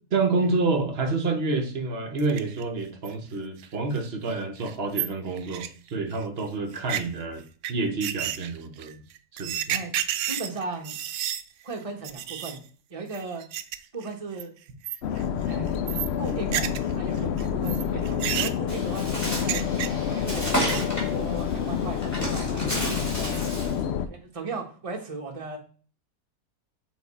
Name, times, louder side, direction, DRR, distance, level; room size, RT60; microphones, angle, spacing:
voice 1, 0.1-7.4 7.7-9.0 9.3-9.6, right 3 dB, 45° right, 6 dB, 1.1 m, -28 dB
sound 1, 2.2-2.6 3.0-3.1 3.6-3.7 4.0-4.1 4.3-4.4 4.6-6.2 6.7-7.0 7.6-7.7 8.0-11.4 11.7-11.8 12.0-12.6 13.1-13.8 14.0-14.4 14.8-15.2 15.5-16.9 17.2-20.1 20.4-21.0, right 11 dB, 75° right, 1.0 m, -31 dB
voice 2, 10.2-11.0 11.6-12.6 12.9-13.4 13.9-14.5 15.5-15.7 16.2-16.7 17.0-19.6 20.1-23.5 24.0-25.6, right 3 dB, 25° right, 2 dB, 1.1 m, -37 dB
sound 2, 15.0-24.1, left 8 dB, 70° left, 0.6 m, -28 dB
Bird, 18.7-23.8, right 1 dB, 10° left, 2.2 m, -32 dB
6.8 x 4.0 x 4.2 m, 0.40 s
omnidirectional pair, 1.6 m